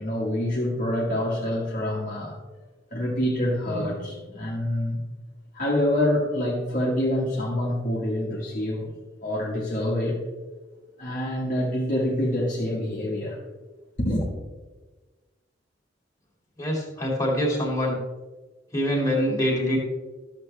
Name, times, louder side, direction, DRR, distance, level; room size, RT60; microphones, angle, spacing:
voice 1, 0.0-2.4 2.9-5.0 5.5-8.9 9.2-10.2 11.0-13.4 14.0-14.3, left 1 dB, 40° left, -4 dB, 1.5 m, -26 dB
voice 2, 16.6-17.9 18.7-19.8, equal, 15° left, -2 dB, 2.3 m, -24 dB
13.0 x 7.2 x 3.3 m, 1.2 s
head